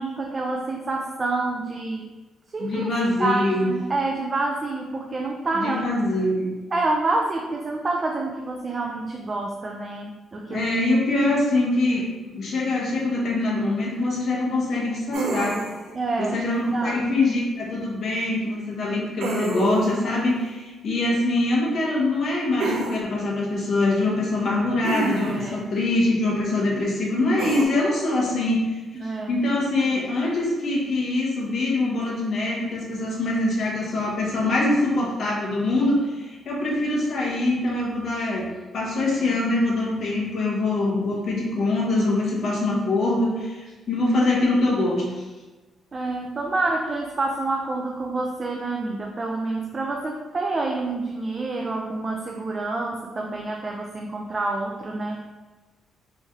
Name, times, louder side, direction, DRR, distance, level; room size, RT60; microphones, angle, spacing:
voice 1, 0.0-2.1 2.5-2.9 3.2-5.8 6.7-10.6 15.9-16.4 16.7-17.1 25.2-25.7 28.9-29.4 45.9-55.2, right 3 dB, 30° right, 0 dB, 0.3 m, -27 dB
voice 2, 2.6-3.7 5.5-6.6 10.5-15.6 16.2-38.5 38.7-45.2, left 2 dB, 50° left, -4 dB, 1.0 m, -24 dB
sound 1, 15.1-15.9 19.2-20.0 22.6-23.0 24.8-25.5 27.4-27.6, right 3 dB, 80° right, 0.5 m, -27 dB
3.1 x 2.7 x 3.5 m, 1.2 s
cardioid pair, 135°, 0 cm